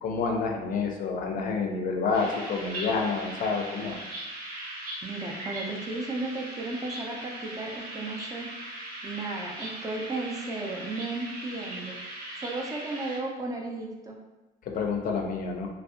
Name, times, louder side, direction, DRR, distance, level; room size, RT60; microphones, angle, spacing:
voice 1, 0.0-4.0 14.7-15.7, left 4 dB, 55° left, 2 dB, 0.4 m, -28 dB
sound 1, 2.1-13.2, right 1 dB, 70° right, 0.9 m, -39 dB
voice 2, 5.0-8.5 9.0-12.0 12.3-14.2, right 2 dB, 20° right, -1 dB, 0.4 m, -34 dB
2.5 x 2.0 x 2.4 m, 1.1 s
cardioid pair, 110°, 17 cm